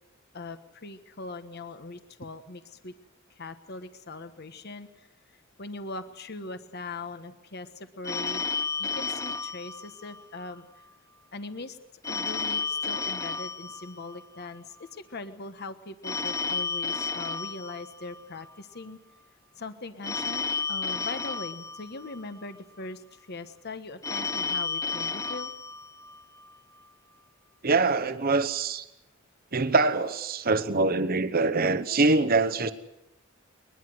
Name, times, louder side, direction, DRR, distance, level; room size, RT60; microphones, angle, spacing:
voice 1, 0.3-3.0 3.3-5.1 5.6-8.4 8.8-10.7 11.3-11.8 12.1-19.0 19.6-25.5, left 3 dB, 50° left, 1.3 m, -40 dB
Telephone, 8.0-10.5 12.0-14.5 16.0-18.5 20.0-22.5 24.0-26.5, left 4 dB, 15° left, 0.8 m, -32 dB
voice 2, 27.6-28.8 29.5-32.7, right 3 dB, 45° right, 1.0 m, -24 dB
22.0 x 21.0 x 7.9 m
head